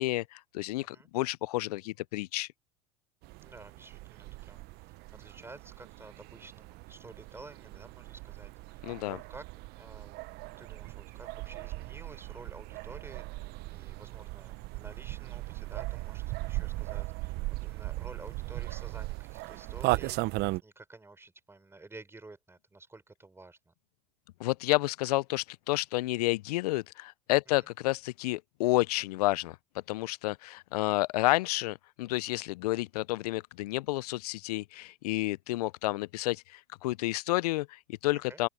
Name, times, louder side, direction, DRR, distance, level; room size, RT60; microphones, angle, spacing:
voice 1, 0.0-2.5 8.8-9.2 24.4-29.6 29.9-38.5, left 19 dB, 75° left, 0.5 m, -30 dB
voice 2, 0.8-1.1 3.4-9.5 9.8-10.2 10.6-20.2 20.6-23.7 38.1-38.4, right 3 dB, 10° right, 6.6 m, -51 dB
sound 1, 3.2-20.6, right 21 dB, 55° right, 1.0 m, -38 dB
open air
hypercardioid pair, 90°, 20 cm